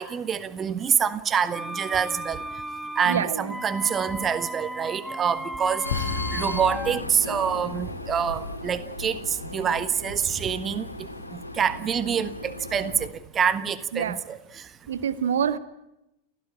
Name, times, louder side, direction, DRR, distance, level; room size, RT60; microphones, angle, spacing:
voice 1, 0.0-2.4 3.0-6.0 6.3-10.9 11.3-14.4, right 7 dB, 25° right, 13 dB, 1.6 m, -26 dB
sound 1, 1.5-7.0, right 1 dB, ahead, 0.9 m, -35 dB
voice 2, 3.1-3.5 13.9-14.2 14.9-15.6, right 8 dB, 65° right, 12 dB, 1.8 m, -26 dB
Vehicle, 5.8-13.1, left 2 dB, 85° left, 2.9 m, -36 dB
sound 2, 5.9-8.4, left 7 dB, 55° left, 2.4 m, -35 dB
29.5 x 16.5 x 10.0 m, 0.88 s
figure-of-eight pair, 90°, 0 cm